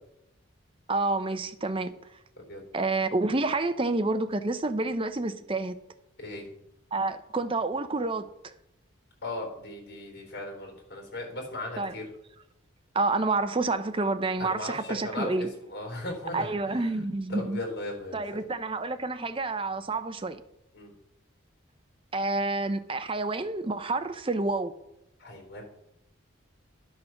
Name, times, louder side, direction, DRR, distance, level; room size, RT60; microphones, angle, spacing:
voice 1, 0.9-1.9 2.7-5.7 6.9-8.5 11.8-11.9 12.9-15.5 16.3-17.6 18.1-20.4 22.1-24.7, right 3 dB, 25° right, 0.6 m, -29 dB
voice 2, 9.2-12.0 14.4-17.0 17.3-18.4 20.7-20.9 25.2-25.6, left 1 dB, 50° left, 4.0 m, -37 dB
11.0 x 6.5 x 5.9 m
head